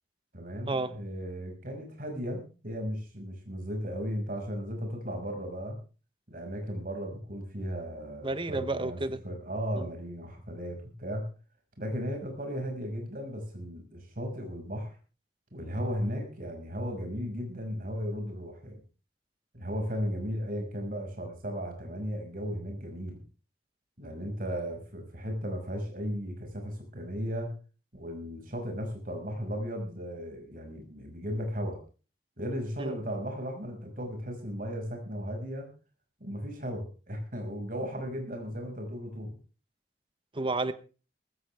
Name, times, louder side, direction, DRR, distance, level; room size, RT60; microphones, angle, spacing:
voice 1, 0.3-5.8 6.3-9.0 9.2-11.3 11.8-14.9 15.5-18.8 19.5-23.2 24.0-27.6 27.9-31.8 32.4-35.7 36.2-39.4, equal, 50° right, 5.8 m, -36 dB
voice 2, 8.2-9.2 9.7-9.9 32.8-33.0 40.3-40.7, right 2 dB, 30° right, 1.0 m, -31 dB
18.5 x 15.5 x 3.5 m
head